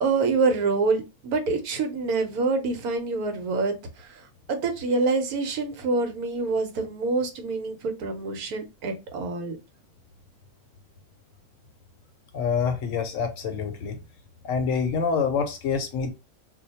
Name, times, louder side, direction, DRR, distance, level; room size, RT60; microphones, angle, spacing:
voice 1, 0.0-4.2 4.5-9.6, right 3 dB, 80° right, 1.2 m, -26 dB
voice 2, 12.3-14.0 14.4-16.1, left 6 dB, 70° left, 0.9 m, -26 dB
2.7 x 2.2 x 4.0 m
omnidirectional pair, 1.6 m